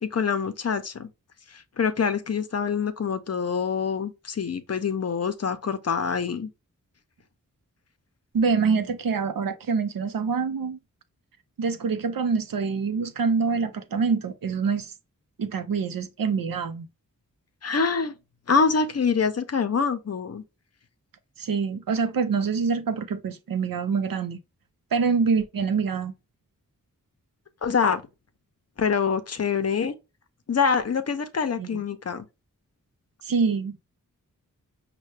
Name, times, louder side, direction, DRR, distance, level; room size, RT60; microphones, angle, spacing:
voice 1, 0.0-1.1 1.5-6.5 17.6-18.1 18.5-20.4 27.6-28.0 28.8-29.9 30.5-32.3, left 5 dB, 50° left, 0.6 m, -25 dB
voice 2, 8.3-10.8 11.6-14.9 15.4-16.9 21.4-24.4 24.9-26.1 31.6-31.8 33.2-33.8, right 5 dB, 85° right, 0.6 m, -25 dB
5.5 x 2.2 x 3.2 m
wide cardioid pair, 90°, 33 cm